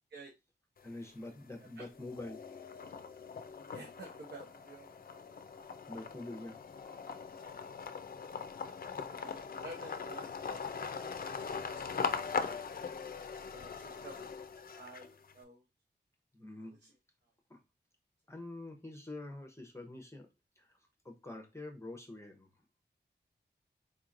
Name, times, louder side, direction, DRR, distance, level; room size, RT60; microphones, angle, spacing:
sound 1, 0.8-1.4 1.8-15.3, left 5 dB, 55° left, 0.4 m, -41 dB
voice 1, 0.8-2.4 2.9-3.0 5.9-6.6 16.3-16.7 17.5-17.6 18.3-20.3 20.6-20.8 21.0-22.5, left 2 dB, 15° left, 0.8 m, -46 dB
voice 2, 3.7-4.9 9.1-11.9 13.5-14.4 14.7-15.1 15.3-15.6 16.6-16.9, right 2 dB, 70° right, 0.9 m, -51 dB
4.0 x 3.0 x 2.5 m
wide cardioid pair, 90°, 18 cm